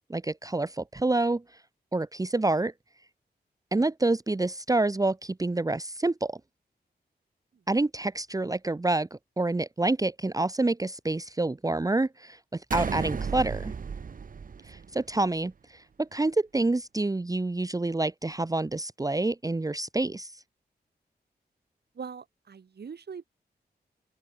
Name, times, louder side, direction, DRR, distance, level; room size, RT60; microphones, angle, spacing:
voice 1, 0.1-1.4 1.9-2.7 3.7-6.4 7.7-13.7 14.7-20.3, right 2 dB, 20° right, 1.0 m, -27 dB
sound 1, 12.7-15.3, right 6 dB, 55° right, 1.0 m, -34 dB
voice 2, 21.9-23.3, right 6 dB, 70° right, 4.0 m, -42 dB
wide cardioid pair, 80°, 17 cm